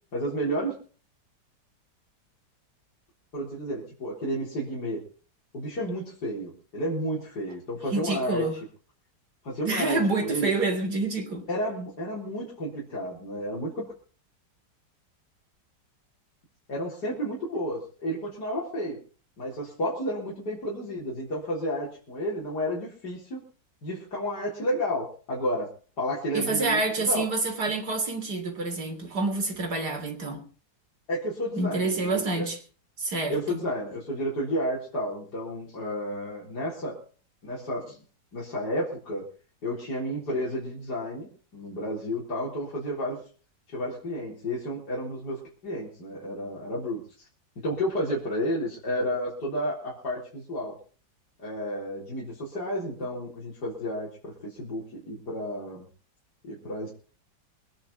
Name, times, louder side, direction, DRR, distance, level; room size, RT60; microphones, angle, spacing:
voice 1, 0.1-0.8 3.3-5.0 5.5-8.5 9.4-10.5 11.5-13.9 16.7-19.0 19.4-23.4 23.8-25.7 26.0-27.3 31.1-32.5 33.3-37.0 37.4-38.0 38.3-39.3 39.6-43.2 43.7-47.0 47.6-50.8 51.4-55.9 56.4-56.9, equal, 65° left, 4.5 m, -31 dB
voice 2, 7.9-8.5 9.7-11.5 26.3-30.4 31.6-32.6 33.0-33.6, right 3 dB, 60° right, 3.8 m, -27 dB
23.5 x 10.0 x 4.2 m
omnidirectional pair, 1.9 m